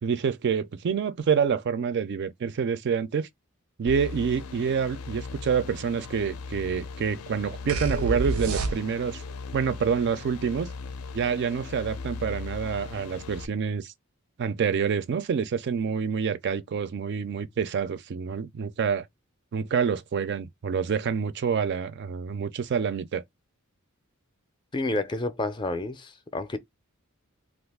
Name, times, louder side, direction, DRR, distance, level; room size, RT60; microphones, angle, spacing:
voice 1, 0.0-3.3 3.8-9.2 9.5-10.7 11.1-13.9 14.4-19.1 19.5-23.2, right 6 dB, 55° right, 0.3 m, -27 dB
sound 1, 3.9-13.5, left 4 dB, 85° left, 0.5 m, -38 dB
sound 2, 7.7-9.2, right 3 dB, 90° right, 0.6 m, -28 dB
voice 2, 24.7-26.6, left 2 dB, 20° left, 0.4 m, -30 dB
2.5 x 2.4 x 3.4 m
head